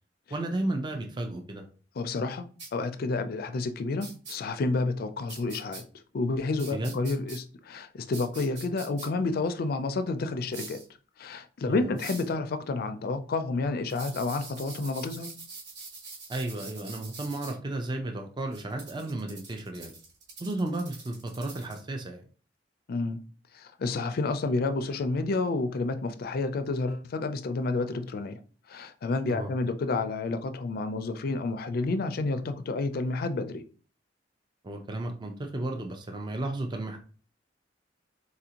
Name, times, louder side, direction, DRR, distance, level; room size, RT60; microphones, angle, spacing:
voice 1, 0.3-1.6 6.7-6.9 11.6-12.0 16.3-19.9 20.4-22.2 29.3-29.5 34.6-37.0, right 2 dB, 25° right, 0.4 m, -33 dB
voice 2, 2.0-2.4 2.7-5.8 6.1-10.8 11.2-15.3 22.9-23.2 23.5-28.4 28.7-33.6, left 3 dB, 55° left, 0.4 m, -30 dB
sound 1, 2.6-2.7 4.0-4.4 5.3-5.8 6.6-7.4 8.1-9.1 10.5-10.8 12.0-12.3 13.9-17.5 18.5-21.8, right 4 dB, 75° right, 1.7 m, -44 dB
4.0 x 2.5 x 2.8 m
head